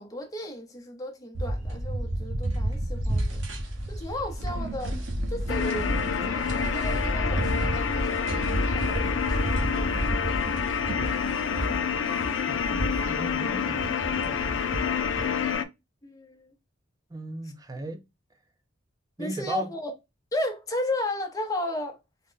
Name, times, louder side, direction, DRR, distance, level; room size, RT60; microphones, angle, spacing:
voice 1, 0.0-3.4 3.9-5.0 5.3-10.1 16.0-16.6 19.2-19.9 20.3-22.0, left 1 dB, 20° left, 0.7 m, -34 dB
sound 1, 1.3-15.5, right 1 dB, 75° right, 1.0 m, -31 dB
sound 2, 5.5-15.6, left 7 dB, 75° left, 0.4 m, -28 dB
voice 2, 11.0-11.3 12.5-14.9 17.1-18.0 19.2-19.7, right 1 dB, 20° right, 0.5 m, -38 dB
3.7 x 2.1 x 3.7 m
head